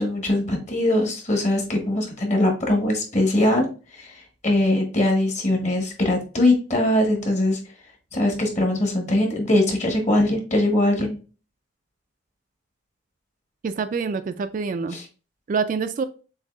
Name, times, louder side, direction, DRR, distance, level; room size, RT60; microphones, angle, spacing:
voice 1, 0.0-7.6 8.1-11.2 14.9-15.0, left 1 dB, 35° left, 1 dB, 1.3 m, -21 dB
voice 2, 13.6-15.0 15.5-16.0, right 5 dB, 45° right, 10 dB, 0.3 m, -26 dB
7.1 x 2.7 x 2.4 m, 0.35 s
head